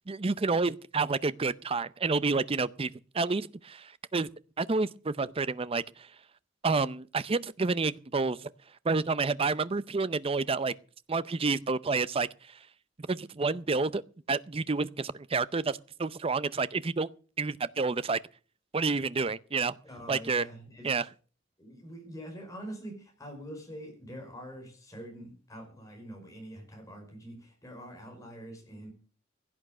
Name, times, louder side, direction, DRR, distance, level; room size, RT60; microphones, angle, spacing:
voice 1, 0.1-2.9 3.1-4.3 4.6-5.8 6.6-8.5 8.8-10.7 11.1-12.3 13.1-14.0 14.3-17.1 17.4-18.2 18.7-19.7 20.1-20.5 20.8-21.1, right 4 dB, 30° right, 0.6 m, -29 dB
voice 2, 19.8-20.9 21.6-28.9, equal, 20° left, 5.3 m, -45 dB
16.0 x 8.6 x 6.7 m
head